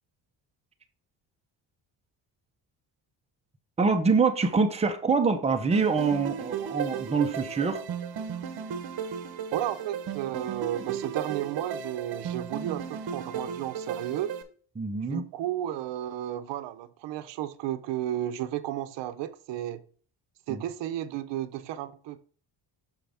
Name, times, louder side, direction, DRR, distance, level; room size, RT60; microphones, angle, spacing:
voice 1, 3.8-7.8 14.8-15.2 20.5-20.6, right 4 dB, 15° right, 0.7 m, -25 dB
sound 1, 5.7-14.4, right 7 dB, 55° right, 1.0 m, -35 dB
voice 2, 9.5-14.3 15.1-19.8 20.5-22.2, right 12 dB, 75° right, 0.7 m, -33 dB
6.3 x 5.6 x 3.4 m
cardioid pair, 115°, 43 cm